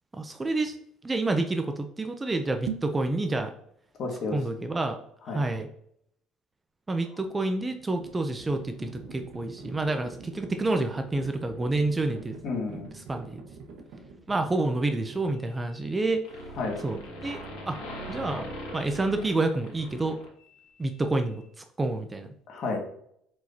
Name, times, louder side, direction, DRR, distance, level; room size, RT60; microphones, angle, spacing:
voice 1, 0.1-0.8 1.0-3.5 4.3-5.0 5.3-5.7 6.9-12.4 12.7-12.8 13.1-13.4 14.3-16.2 16.8-17.8 18.1-18.4 18.7-20.2 20.8-22.3, right 2 dB, 15° right, 6 dB, 0.5 m, -28 dB
sound 1, 2.5-3.1, right 9 dB, 90° right, 0.5 m, -35 dB
voice 2, 4.0-4.4 5.3-5.4 12.4-12.9 16.6-16.8 22.5-22.8, left 3 dB, 50° left, 2 dB, 1.8 m, -31 dB
Livestock farm animals working animals, 7.2-16.2, right 4 dB, 70° right, 1.3 m, -46 dB
sound 2, 15.8-16.0 16.2-20.7, equal, 85° left, 2.0 m, -40 dB
7.6 x 4.8 x 2.8 m, 0.69 s
cardioid pair, 135°, 0 cm